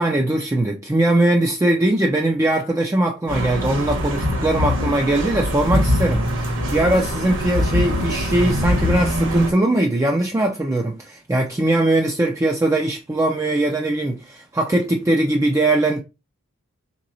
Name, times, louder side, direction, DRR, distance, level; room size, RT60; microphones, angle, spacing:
voice 1, 0.0-16.0, right 1 dB, 15° right, 0.4 m, -20 dB
sound 1, 3.3-9.5, left 1 dB, 60° right, 1.2 m, -22 dB
3.7 x 3.0 x 2.6 m
head